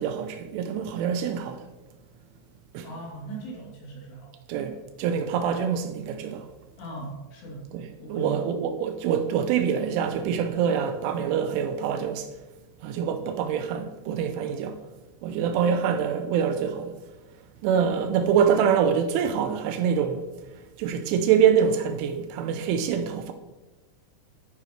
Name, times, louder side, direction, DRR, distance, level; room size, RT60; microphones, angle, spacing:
voice 1, 0.0-1.7 2.7-2.9 4.5-6.5 7.7-12.3 12.8-14.8 15.2-16.9 17.6-20.3 20.8-23.3, right 7 dB, 80° right, 3.1 m, -25 dB
voice 2, 2.8-4.3 6.8-7.6 8.0-8.4, right 2 dB, 60° left, 5.1 m, -39 dB
12.0 x 10.0 x 3.2 m
omnidirectional pair, 5.7 m